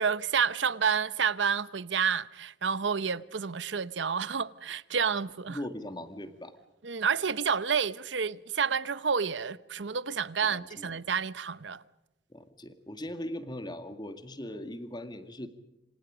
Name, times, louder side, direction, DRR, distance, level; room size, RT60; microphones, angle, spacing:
voice 1, 0.0-5.6 6.8-11.8, right 6 dB, 80° right, 0.8 m, -29 dB
voice 2, 5.5-6.5 10.4-11.0 12.3-15.5, left 1 dB, 25° left, 2.0 m, -40 dB
27.0 x 26.5 x 5.1 m
head